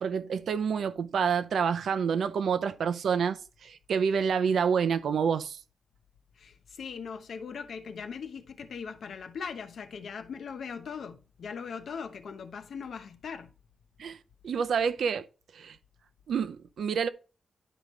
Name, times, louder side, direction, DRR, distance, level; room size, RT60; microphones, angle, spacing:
voice 1, 0.0-5.6 14.0-15.3 15.5-15.8 16.3-17.1, right 6 dB, 75° right, 0.6 m, -28 dB
voice 2, 6.4-13.5, left 6 dB, 70° left, 1.0 m, -40 dB
11.0 x 5.1 x 3.2 m
wide cardioid pair, 165°, 0 cm